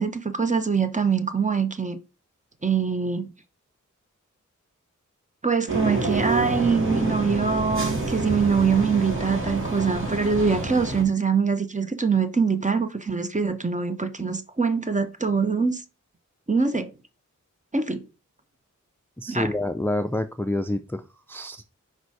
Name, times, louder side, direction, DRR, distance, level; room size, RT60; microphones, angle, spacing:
voice 1, 0.0-2.0 2.6-3.3 5.4-15.8 16.5-16.9 17.7-18.0 19.3-19.5, right 5 dB, 25° right, 0.9 m, -23 dB
sound 1, 5.7-11.0, right 2 dB, 40° right, 2.0 m, -28 dB
voice 2, 19.2-21.0 21.3-21.6, left 1 dB, 5° left, 0.4 m, -27 dB
5.2 x 4.1 x 4.7 m
wide cardioid pair, 55°, 31 cm